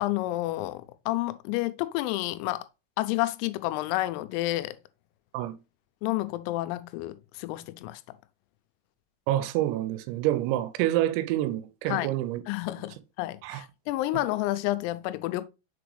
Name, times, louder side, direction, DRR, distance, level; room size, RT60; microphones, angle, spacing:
voice 1, 0.0-2.7 3.0-4.8 6.0-8.2 11.9-12.1 12.5-15.5, left 17 dB, 90° left, 3.3 m, -30 dB
voice 2, 9.3-12.4 13.4-13.6, right 14 dB, 90° right, 3.3 m, -27 dB
6.7 x 5.0 x 3.1 m
omnidirectional pair, 6.0 m